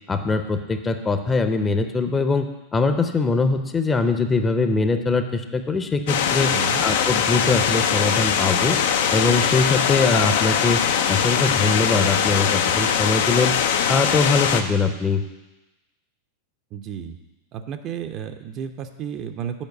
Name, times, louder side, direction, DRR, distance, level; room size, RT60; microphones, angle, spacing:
voice 1, 0.1-6.5 6.8-8.8 9.1-10.8 11.1-13.6 13.9-15.2, left 3 dB, 20° left, 8 dB, 0.7 m, -22 dB
sound 1, 6.1-14.6, left 8 dB, 65° left, 0.6 m, -21 dB
voice 2, 6.5-6.9 16.7-17.2 17.5-19.6, right 8 dB, 45° right, 7 dB, 0.6 m, -32 dB
7.3 x 4.5 x 6.7 m, 1.1 s
hypercardioid pair, 95°, 0 cm